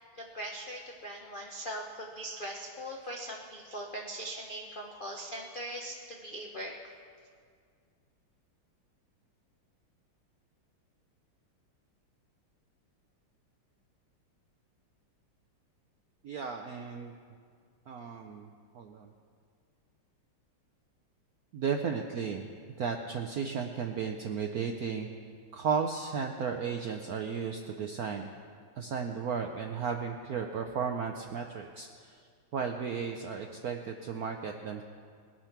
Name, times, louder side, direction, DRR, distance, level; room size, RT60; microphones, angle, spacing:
voice 1, 0.1-6.8, right 1 dB, 80° left, -1 dB, 0.4 m, -40 dB
voice 2, 16.2-17.1 17.9-18.5 18.7-19.1 21.5-22.5 22.8-25.1 25.5-28.3 28.8-32.2 32.5-34.8, right 6 dB, 75° right, 3 dB, 0.8 m, -34 dB
20.0 x 6.8 x 5.8 m, 2.1 s
omnidirectional pair, 2.4 m